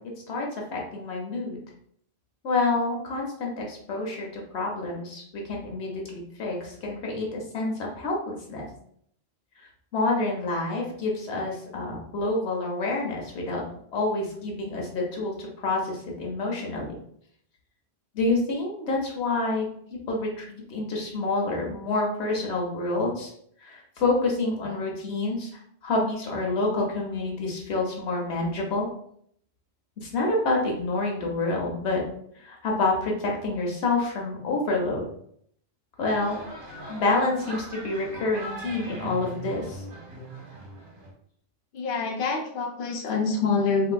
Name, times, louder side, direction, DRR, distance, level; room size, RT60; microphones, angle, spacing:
voice 1, 0.7-1.6 2.4-5.2 5.5-8.7 9.9-13.6 13.9-16.9 18.1-19.7 20.1-23.3 23.6-25.5 25.8-28.9 30.0-32.0 32.4-35.0 36.0-36.4 36.9-39.8, left 2 dB, 90° left, -1 dB, 1.1 m, -28 dB
sound 1, 36.0-41.1, right 1 dB, 55° right, 0.9 m, -40 dB
voice 2, 41.7-43.9, left 4 dB, 65° left, 2 dB, 0.7 m, -26 dB
3.2 x 2.8 x 2.2 m, 0.66 s
omnidirectional pair, 1.1 m